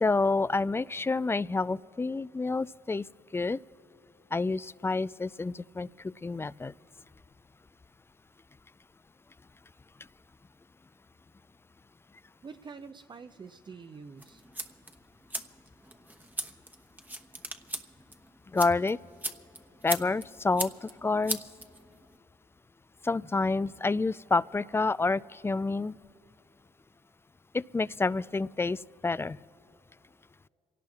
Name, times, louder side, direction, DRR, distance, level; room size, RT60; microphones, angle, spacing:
voice 1, 0.0-3.0 3.3-3.6 4.3-6.7 18.5-19.0 19.8-21.4 23.0-26.0 27.5-29.4, left 3 dB, 15° left, 19 dB, 0.3 m, -28 dB
voice 2, 12.4-14.4, right 5 dB, 30° right, 9 dB, 0.6 m, -46 dB
sound 1, 14.2-22.2, right 1 dB, 10° right, 1.1 m, -40 dB
28.0 x 17.5 x 2.4 m, 2.7 s
hypercardioid pair, 50°, 15 cm